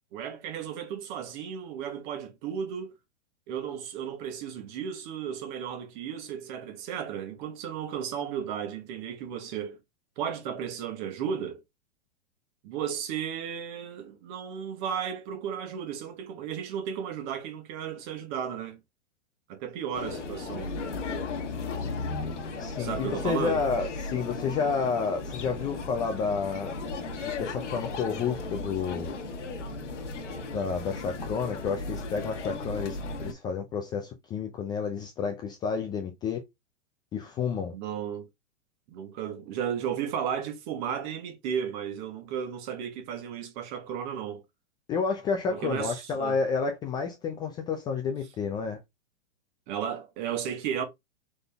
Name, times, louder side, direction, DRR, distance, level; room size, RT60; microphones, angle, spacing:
voice 1, 0.1-3.0 3.5-9.8 10.2-11.6 12.6-18.8 19.5-20.7 22.8-23.6 37.7-38.3 38.9-44.4 45.5-46.4 49.7-50.8, right 8 dB, 40° right, 1.3 m, -34 dB
sound 1, 19.9-33.3, left 3 dB, 85° left, 1.4 m, -35 dB
voice 2, 22.6-26.7 27.2-29.2 30.5-36.4 37.1-37.7 44.9-48.8, left 5 dB, 10° left, 0.4 m, -30 dB
3.9 x 3.8 x 3.4 m
hypercardioid pair, 130°, 35 cm